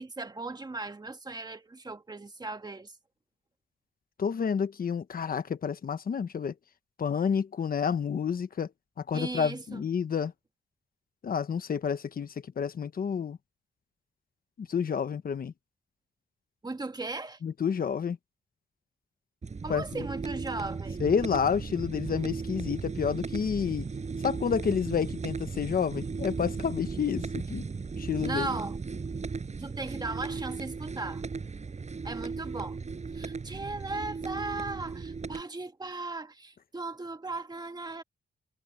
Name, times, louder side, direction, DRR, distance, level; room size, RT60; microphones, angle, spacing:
voice 1, 0.0-2.9 9.1-9.8 16.6-17.4 19.6-21.0 28.2-28.8 29.6-31.2 32.0-32.8 33.1-38.0, right 3 dB, 20° right, 1.5 m, -37 dB
voice 2, 4.2-6.5 7.0-8.7 9.0-10.3 11.2-12.3 12.6-13.4 14.6-15.5 17.4-18.2 19.7-20.0 21.0-23.9 24.2-27.6 28.0-28.5, left 7 dB, 50° left, 1.1 m, -29 dB
sound 1, 19.4-35.4, right 4 dB, 35° right, 6.4 m, -36 dB
wide cardioid pair, 115°, 19 cm